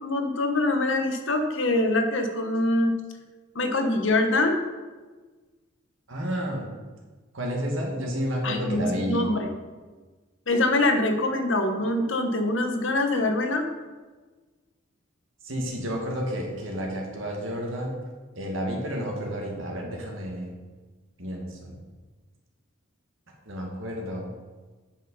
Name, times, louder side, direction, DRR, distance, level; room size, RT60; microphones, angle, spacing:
voice 1, 0.0-3.0 3.5-4.6 8.4-9.5 10.5-13.7, left 2 dB, 65° left, 5 dB, 1.1 m, -24 dB
voice 2, 6.1-6.7 7.3-9.3 15.4-18.0 18.4-20.5 21.2-21.8 23.5-24.2, equal, 70° right, 0 dB, 2.1 m, -31 dB
9.3 x 5.6 x 5.5 m, 1.3 s
head